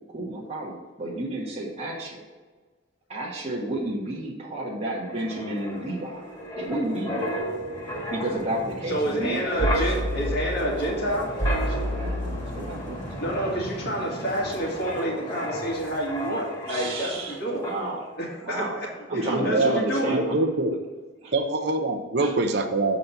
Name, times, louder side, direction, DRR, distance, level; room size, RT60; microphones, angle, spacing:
voice 1, 0.1-2.2 3.1-6.3 6.6-7.2 8.1-10.0 10.6-11.2 11.7-13.0 13.3-13.4 16.6-18.1 18.4-18.8 19.1-20.4 21.2-21.3 22.2-22.3, right 1 dB, 30° right, -5 dB, 1.2 m, -32 dB
Wind, 4.9-17.3 17.6-17.9, equal, 20° left, 1.9 m, -31 dB
voice 2, 8.9-11.3 13.2-17.7 18.2-18.9 19.1-20.1, right 1 dB, 50° left, -2 dB, 2.0 m, -29 dB
voice 3, 19.1-19.9 20.1-20.8 21.3-23.0, right 2 dB, 55° right, 6 dB, 0.8 m, -24 dB
7.5 x 4.1 x 5.7 m, 1.4 s
head